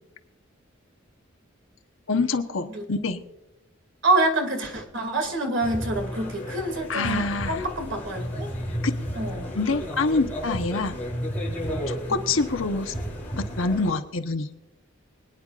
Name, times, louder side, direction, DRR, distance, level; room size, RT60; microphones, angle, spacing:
voice 1, 2.1-3.2 6.9-7.7 8.8-8.9 9.5-11.0 11.9-12.9 13.4-14.5, left 3 dB, 85° left, 7 dB, 1.1 m, -26 dB
voice 2, 4.0-8.5 9.1-9.6 12.3-12.4, right 2 dB, 65° right, 5 dB, 2.4 m, -26 dB
sound 1, 5.6-13.9, equal, 10° left, 4.9 m, -33 dB
24.5 x 10.0 x 2.5 m, 0.89 s
head